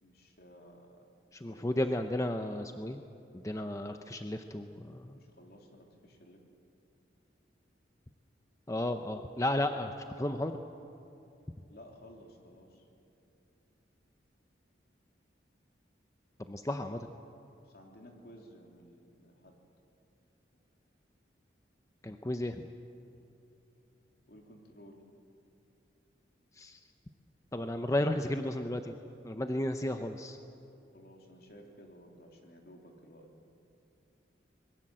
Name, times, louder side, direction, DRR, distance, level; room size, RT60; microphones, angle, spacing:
voice 1, 0.0-1.1 1.4-1.8 5.1-6.4 11.7-12.9 17.6-19.6 24.3-25.0 30.9-33.3, equal, 55° left, 2 dB, 3.2 m, -55 dB
voice 2, 1.3-3.0 3.3-5.2 8.7-10.5 16.5-17.1 22.0-22.7 26.6-26.8 27.5-29.0 29.2-30.4, left 1 dB, 15° left, 7 dB, 0.7 m, -33 dB
25.5 x 22.0 x 7.6 m, 2.9 s
head